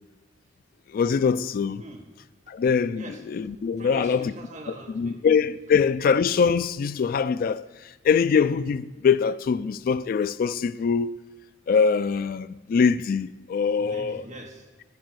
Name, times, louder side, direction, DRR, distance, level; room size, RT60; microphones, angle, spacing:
voice 1, 0.9-1.8 2.5-4.3 4.9-11.1 11.7-14.2, left 6 dB, 50° left, 0.3 m, -23 dB
voice 2, 2.9-3.5 3.8-5.3 13.8-14.7, right 1 dB, 40° right, 1.2 m, -42 dB
10.5 x 4.7 x 6.2 m
head